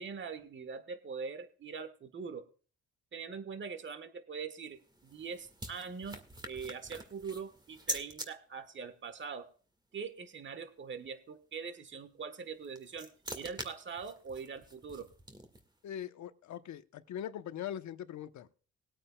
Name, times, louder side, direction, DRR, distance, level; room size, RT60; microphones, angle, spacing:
voice 1, 0.0-2.4 3.1-9.5 9.9-15.1, right 5 dB, 40° right, 12 dB, 1.4 m, -43 dB
sound 1, 4.7-8.3 12.4-15.8, right 1 dB, 15° right, 1.9 m, -44 dB
voice 2, 15.8-18.6, left 10 dB, 70° left, 10 dB, 1.0 m, -41 dB
20.5 x 8.9 x 2.3 m, 0.39 s
cardioid pair, 90°, 30 cm